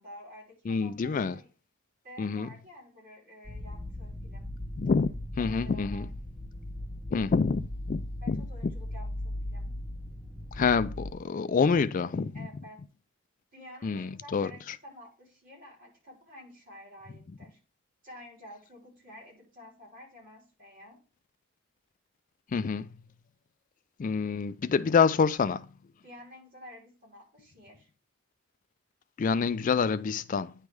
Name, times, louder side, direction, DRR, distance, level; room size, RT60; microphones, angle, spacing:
voice 1, 0.0-1.5 2.0-4.5 5.4-6.1 8.2-9.7 12.3-12.8 13.5-17.6 18.0-21.0 26.0-27.9, left 1 dB, 40° right, 3.7 m, -50 dB
voice 2, 0.7-1.4 2.2-2.5 4.8-6.1 7.1-8.4 10.5-12.5 13.8-14.8 22.5-22.9 24.0-25.7 29.2-30.5, left 5 dB, 35° left, 0.3 m, -27 dB
sound 1, 3.4-11.1, left 1 dB, ahead, 0.9 m, -38 dB
9.3 x 3.3 x 4.7 m
head